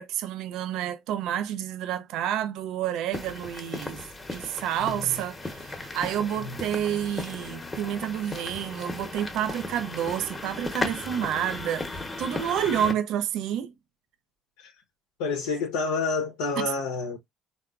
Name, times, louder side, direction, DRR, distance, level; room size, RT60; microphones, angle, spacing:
voice 1, 0.0-4.0 4.3-13.7 16.6-16.7, right 10 dB, 70° right, 0.3 m, -29 dB
sound 1, 3.1-12.9, left 2 dB, 20° left, 0.8 m, -36 dB
voice 2, 4.8-5.2 6.4-6.6 14.6-14.7 15.2-17.2, left 4 dB, 80° left, 0.6 m, -29 dB
3.5 x 2.3 x 2.3 m
hypercardioid pair, 65°, 0 cm